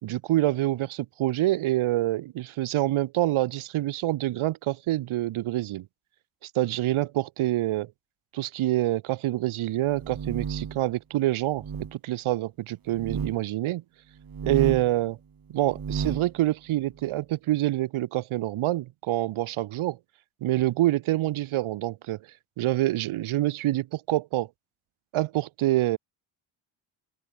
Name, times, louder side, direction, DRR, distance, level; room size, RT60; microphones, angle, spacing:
voice 1, 0.0-5.9 6.4-7.9 8.3-11.6 11.9-13.8 14.4-15.2 15.5-20.0 20.4-22.2 22.6-24.5 25.1-26.0, right 15 dB, 80° right, 1.1 m, -26 dB
sound 1, 9.8-10.8 11.5-11.9 12.9-13.4 14.2-14.9 15.6-16.3, right 7 dB, 45° right, 2.3 m, -32 dB
open air
cardioid pair, 70°, 48 cm